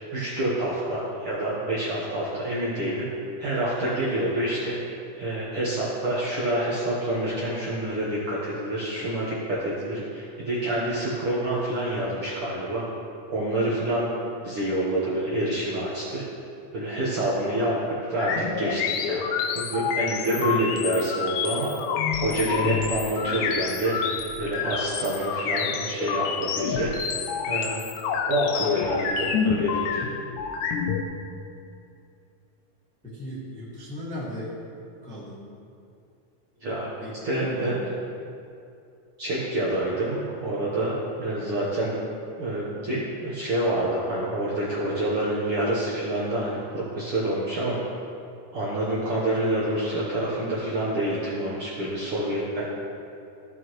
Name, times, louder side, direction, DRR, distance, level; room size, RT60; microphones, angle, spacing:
voice 1, 0.1-3.0 3.4-4.8 5.2-12.8 13.3-14.1 14.4-16.2 16.7-17.7 18.0-21.7 22.1-24.0 24.3-26.9 27.4-27.8 28.2-30.0 36.6-36.9 37.2-37.8 39.2-41.9 42.4-47.8 48.5-52.7, right 1 dB, 60° right, -7 dB, 1.5 m, -27 dB
sound 1, 18.2-31.0, left 6 dB, 80° left, 1.8 m, -28 dB
voice 2, 33.0-34.6 35.0-35.4 37.0-37.9, equal, 5° left, -7 dB, 0.8 m, -36 dB
14.5 x 6.3 x 3.1 m, 2.5 s
omnidirectional pair, 3.8 m